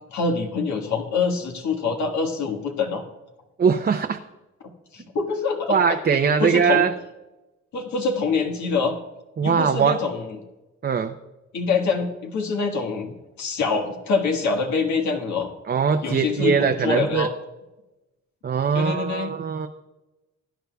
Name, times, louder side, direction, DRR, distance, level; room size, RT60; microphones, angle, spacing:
voice 1, 0.1-3.0 4.9-6.8 7.7-9.0 9.4-10.4 11.5-15.5 16.0-17.3 18.7-19.3, left 4 dB, 70° left, 2 dB, 1.6 m, -25 dB
voice 2, 3.6-4.2 5.7-6.9 9.4-10.0 10.8-11.2 15.7-17.3 18.4-19.7, right 6 dB, 35° right, 6 dB, 0.6 m, -21 dB
20.0 x 9.3 x 2.3 m, 1.0 s
cardioid pair, 90°, 30 cm